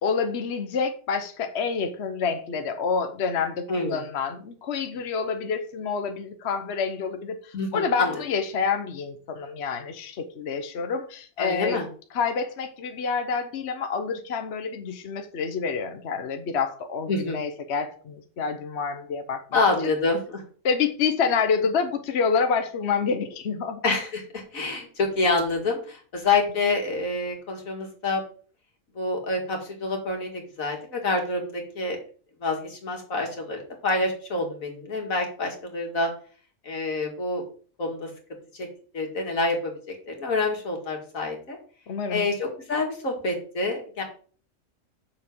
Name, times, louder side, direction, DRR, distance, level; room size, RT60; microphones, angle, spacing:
voice 1, 0.0-11.8 12.1-19.6 20.6-23.8 41.9-42.2, left 5 dB, 55° left, 7 dB, 1.1 m, -28 dB
voice 2, 3.7-4.0 7.5-8.1 11.4-11.9 17.1-17.4 19.5-20.4 23.8-28.2 29.0-32.0 32.4-36.1 36.6-37.4 37.8-38.1 38.6-38.7 38.9-41.6 42.1-44.0, left 3 dB, 80° left, 2 dB, 2.5 m, -27 dB
7.3 x 6.7 x 5.4 m, 0.42 s
omnidirectional pair, 1.4 m